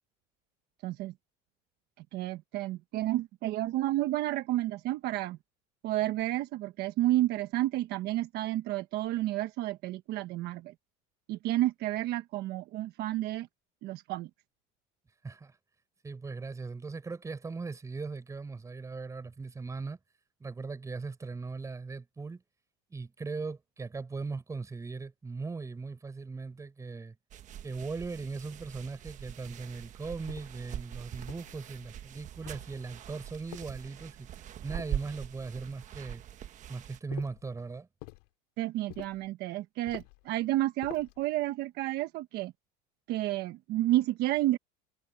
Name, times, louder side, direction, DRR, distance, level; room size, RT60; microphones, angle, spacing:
voice 1, 0.8-1.1 2.1-5.4 5.8-10.7 11.3-13.5 13.8-14.3 38.6-42.5 43.1-44.6, right 15 dB, 60° right, 1.2 m, -31 dB
voice 2, 15.2-15.6 16.0-20.0 20.4-22.4 22.9-27.1 27.6-34.3 34.6-36.2 36.7-37.9, right 4 dB, 15° right, 5.6 m, -39 dB
sound 1, 27.3-37.0, right 10 dB, 40° right, 1.3 m, -43 dB
sound 2, 30.3-30.7 31.3-31.9 32.4-33.0 33.5-34.2 34.8-35.5 37.1-37.5 38.0-38.3 38.9-39.3 39.9-40.3 40.8-41.2, left 24 dB, 85° left, 2.7 m, -48 dB
cardioid pair, 135°, 19 cm